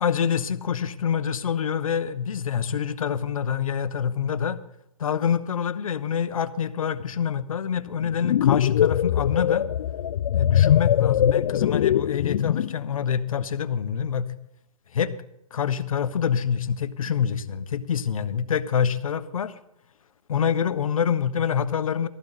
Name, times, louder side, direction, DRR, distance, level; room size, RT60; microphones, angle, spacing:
voice 1, 0.0-4.6 5.0-9.7 10.3-14.3 14.9-15.1 15.5-19.5 20.3-22.1, left 7 dB, 65° left, 13 dB, 1.2 m, -26 dB
sound 1, 8.0-12.8, left 11 dB, 50° left, 0.4 m, -22 dB
18.5 x 14.5 x 4.2 m, 0.83 s
hypercardioid pair, 150°, 19 cm